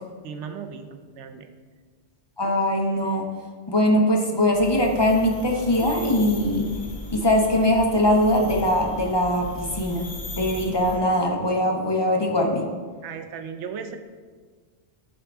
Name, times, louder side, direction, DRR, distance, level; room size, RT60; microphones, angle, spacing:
voice 1, 0.2-1.5 13.0-14.0, right 6 dB, 90° right, 7 dB, 0.9 m, -36 dB
voice 2, 2.4-3.3 3.7-6.7 7.1-10.0 10.3-12.6, left 1 dB, 25° left, 1 dB, 0.7 m, -21 dB
sound 1, 4.5-11.0, left 1 dB, 45° left, 1.1 m, -37 dB
10.5 x 3.6 x 3.5 m, 1.5 s
omnidirectional pair, 1.2 m